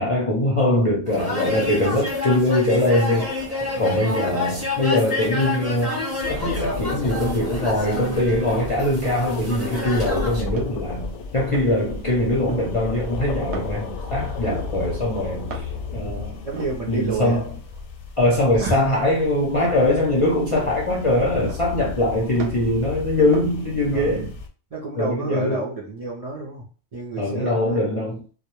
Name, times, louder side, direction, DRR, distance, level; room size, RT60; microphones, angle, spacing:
voice 1, 0.0-3.3 3.8-16.4 16.9-17.5 18.2-24.3 25.0-25.7 27.2-28.2, left 1 dB, 50° left, 0.4 m, -22 dB
sound 1, 1.1-10.4, left 2 dB, 15° right, 0.6 m, -29 dB
voice 2, 3.7-4.0 16.0-17.4 18.6-18.8 23.9-24.3 24.7-26.6 26.9-27.8, right 3 dB, 50° right, 0.4 m, -30 dB
sound 2, 6.2-24.5, left 4 dB, 90° left, 0.9 m, -33 dB
sound 3, 10.5-11.1 11.4-11.9 12.3-13.2 13.5-14.0 14.3-16.1 16.4-19.0 19.5-22.8 23.1-23.6, right 3 dB, 90° right, 0.9 m, -37 dB
2.1 x 2.0 x 2.9 m
omnidirectional pair, 1.2 m